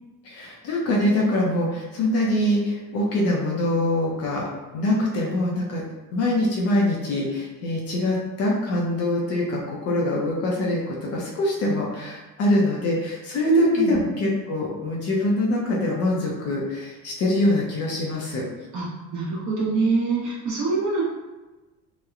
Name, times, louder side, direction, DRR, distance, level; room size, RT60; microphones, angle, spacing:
voice 1, 0.2-4.5 4.7-5.8 6.1-18.4, left 1 dB, 45° left, -2 dB, 0.5 m, -24 dB
voice 2, 13.4-14.0 18.7-21.0, right 3 dB, 50° right, -6 dB, 1.0 m, -24 dB
2.9 x 2.1 x 2.4 m, 1.1 s
cardioid pair, 160°, 37 cm